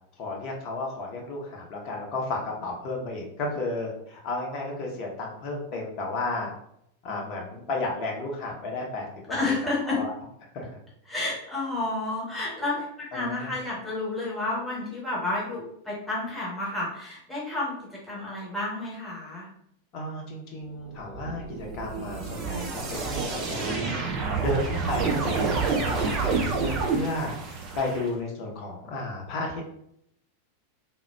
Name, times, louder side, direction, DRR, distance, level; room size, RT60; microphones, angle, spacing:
voice 1, 0.2-6.5 7.0-9.5 9.8-10.1 10.5-10.7 13.1-13.5 19.9-24.0 24.4-27.3 27.7-29.6, left 2 dB, 40° left, -1 dB, 0.7 m, -33 dB
voice 2, 9.3-10.0 11.1-19.5, left 2 dB, 5° left, -6 dB, 1.0 m, -30 dB
sound 1, 21.0-28.1, right 4 dB, 35° right, 0.5 m, -28 dB
3.4 x 2.1 x 2.2 m, 0.72 s
figure-of-eight pair, 90°, 0 cm